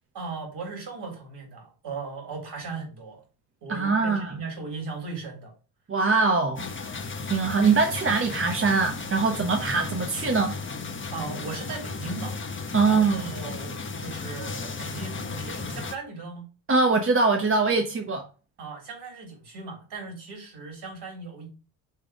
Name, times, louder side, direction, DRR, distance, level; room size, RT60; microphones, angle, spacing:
voice 1, 0.1-3.2 3.6-5.5 11.1-12.4 12.8-16.5 18.6-21.5, right 4 dB, 55° right, 3.7 m, -37 dB
voice 2, 3.7-4.3 5.9-6.7 7.2-10.6 12.7-13.2 16.7-18.3, right 4 dB, 25° right, 1.1 m, -22 dB
sound 1, 6.6-16.0, left 4 dB, 25° left, 1.1 m, -35 dB
5.7 x 3.6 x 4.6 m
hypercardioid pair, 60°, 49 cm